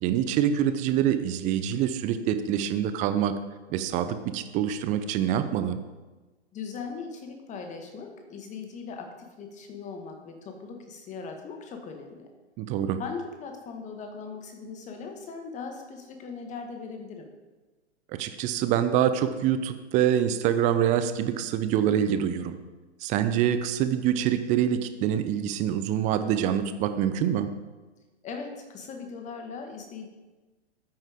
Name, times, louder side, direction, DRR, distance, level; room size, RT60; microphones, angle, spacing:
voice 1, 0.0-3.3 3.7-5.8 12.6-13.0 18.2-22.6 23.0-27.5, right 10 dB, 20° right, 11 dB, 0.7 m, -25 dB
voice 2, 6.5-12.3 13.0-17.3 28.2-30.1, left 5 dB, 20° left, 4 dB, 1.7 m, -39 dB
13.0 x 8.9 x 3.7 m, 1.2 s
figure-of-eight pair, 115°, 35 cm